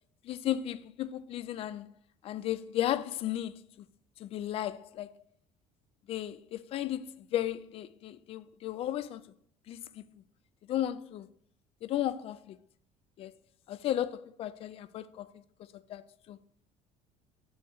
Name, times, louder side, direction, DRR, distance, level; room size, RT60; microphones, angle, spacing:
voice 1, 0.2-1.9 2.2-3.9 4.2-5.1 6.1-9.2 9.7-10.1 10.7-11.3 11.8-12.6 13.2-13.3 13.7-15.4 15.9-16.4, left 12 dB, 45° left, 0.4 m, -34 dB
7.0 x 6.5 x 3.1 m
cardioid pair, 150°, 14 cm